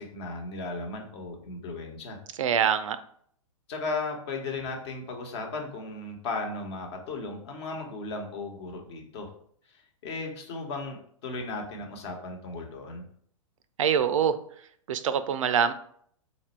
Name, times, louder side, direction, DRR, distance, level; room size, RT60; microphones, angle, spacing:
voice 1, 0.0-2.2 3.7-9.3 10.0-13.0, left 3 dB, 55° left, 2 dB, 1.1 m, -36 dB
voice 2, 2.4-3.0 13.8-14.4 14.9-15.7, right 8 dB, 70° right, 13 dB, 0.4 m, -24 dB
4.1 x 2.5 x 4.3 m, 0.63 s
figure-of-eight pair, 110°, 17 cm